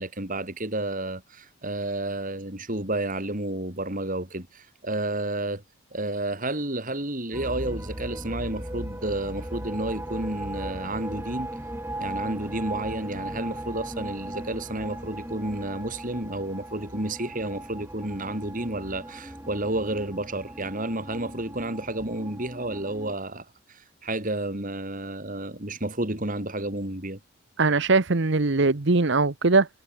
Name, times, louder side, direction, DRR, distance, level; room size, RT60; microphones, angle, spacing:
voice 1, 0.0-5.6 5.9-11.5 12.0-27.2, right 1 dB, 40° right, 4.3 m, -31 dB
sound 1, 7.3-23.2, right 1 dB, 10° right, 4.2 m, -37 dB
voice 2, 27.6-29.7, right 3 dB, 55° right, 1.0 m, -21 dB
head